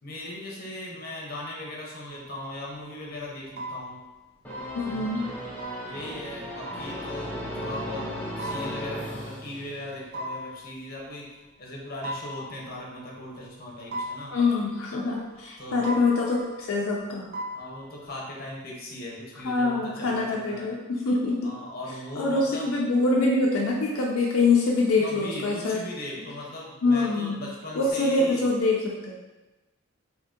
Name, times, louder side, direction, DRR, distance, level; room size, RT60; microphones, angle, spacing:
voice 1, 0.0-4.0 4.9-5.2 5.8-8.1 8.4-11.3 11.6-14.4 15.6-15.9 17.5-20.8 21.4-22.7 25.0-28.5, left 1 dB, 45° left, -3 dB, 0.7 m, -38 dB
sound 1, 2.0-3.0 3.5-4.2 4.5-5.1 5.6-7.5 8.4-9.7 10.1-11.0 12.0-13.3 13.9-15.5 15.8-16.9 17.3-18.1, equal, 45° right, 0.4 m, -39 dB
sound 2, 4.4-10.1, equal, 5° left, 0.5 m, -36 dB
voice 2, 4.7-5.3 14.3-17.3 19.4-21.4 22.2-25.8 26.8-27.4 27.7-29.1, left 3 dB, 75° left, -2 dB, 0.4 m, -24 dB
2.8 x 2.6 x 3.6 m, 1.1 s
head